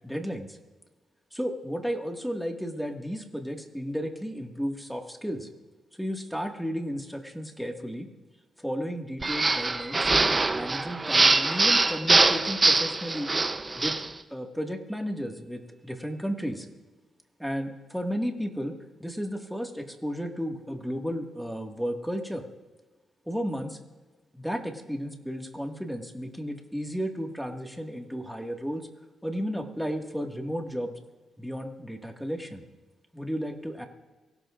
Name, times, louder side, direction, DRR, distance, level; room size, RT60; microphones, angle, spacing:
voice 1, 0.0-0.6 1.3-5.5 6.0-8.1 8.6-10.1 10.5-13.3 13.7-13.9 14.3-16.7 17.4-18.7 19.0-22.4 23.3-23.8 24.3-28.8 29.2-30.9 31.4-32.6 33.1-33.9, equal, ahead, 2 dB, 1.9 m, -33 dB
sound 1, 9.2-14.1, right 3 dB, 25° right, 0.7 m, -23 dB
24.0 x 16.5 x 2.5 m, 1.2 s
cardioid pair, 80°, 0 cm